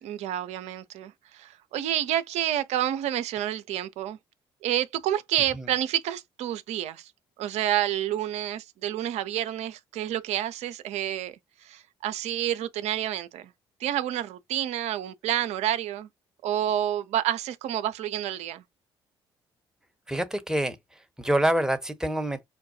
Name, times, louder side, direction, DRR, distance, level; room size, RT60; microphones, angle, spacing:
voice 1, 0.0-4.2 4.6-7.1 7.4-11.4 11.6-13.5 13.8-16.1 16.4-18.6, right 12 dB, 55° right, 0.5 m, -29 dB
voice 2, 20.1-20.8 21.2-22.4, right 1 dB, 5° right, 0.9 m, -26 dB
5.6 x 2.2 x 2.7 m
figure-of-eight pair, 45°, 13 cm